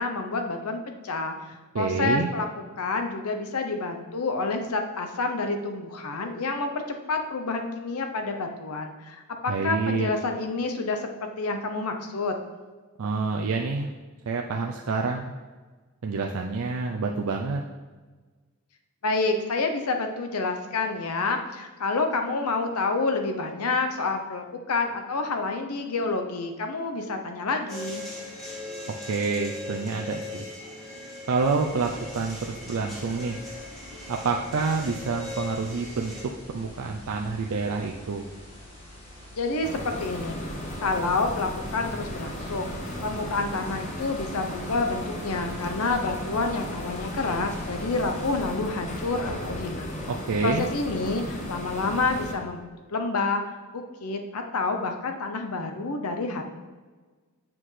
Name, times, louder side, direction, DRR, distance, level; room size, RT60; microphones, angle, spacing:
voice 1, 0.0-2.5 2.8-12.3 19.0-28.0 39.3-40.4 40.8-42.7 43.0-50.0 50.4-53.4 53.7-56.4, left 3 dB, 85° left, 5 dB, 0.7 m, -28 dB
voice 2, 1.7-2.3 9.5-10.1 13.0-13.9 14.3-15.3 16.0-17.6 28.9-30.5 31.3-33.4 34.1-36.1 36.5-38.2 50.1-50.7, right 4 dB, 75° right, 1 dB, 0.5 m, -27 dB
sound 1, 27.7-36.2, left 2 dB, ahead, 2.0 m, -39 dB
sound 2, 31.3-48.4, left 1 dB, 50° left, 2.3 m, -47 dB
sound 3, 39.6-52.3, equal, 30° left, 0.8 m, -35 dB
7.7 x 5.9 x 3.2 m, 1.4 s
head